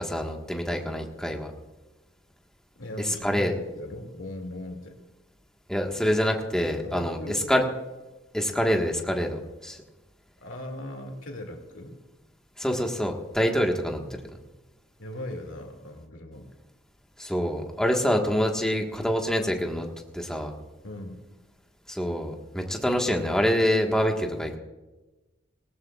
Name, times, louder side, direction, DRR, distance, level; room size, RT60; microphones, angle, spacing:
voice 1, 0.0-1.5 3.0-3.5 5.7-7.6 8.3-9.8 12.6-14.0 17.2-19.9 20.1-20.5 21.9-24.6, equal, 5° left, 1 dB, 1.5 m, -26 dB
voice 2, 2.8-5.0 6.8-7.7 10.4-12.0 14.0-14.1 15.0-16.5 20.8-21.2 22.8-23.0, left 1 dB, 90° left, 3 dB, 2.5 m, -39 dB
18.5 x 18.5 x 2.4 m, 1.1 s
head